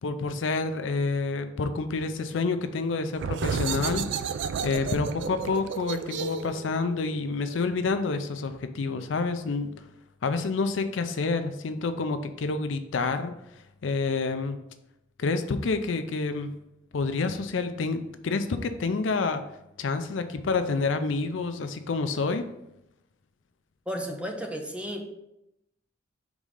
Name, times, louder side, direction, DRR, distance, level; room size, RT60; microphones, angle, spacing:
voice 1, 0.0-4.1 4.6-9.7 10.2-13.3 13.8-14.6 15.2-16.5 16.9-19.4 19.8-22.5, left 4 dB, 70° left, 9 dB, 0.5 m, -28 dB
sound 1, 3.1-8.5, right 6 dB, 65° right, 0.3 m, -33 dB
voice 2, 23.9-25.1, equal, 5° right, 2 dB, 0.7 m, -33 dB
4.8 x 3.7 x 5.3 m, 0.86 s
head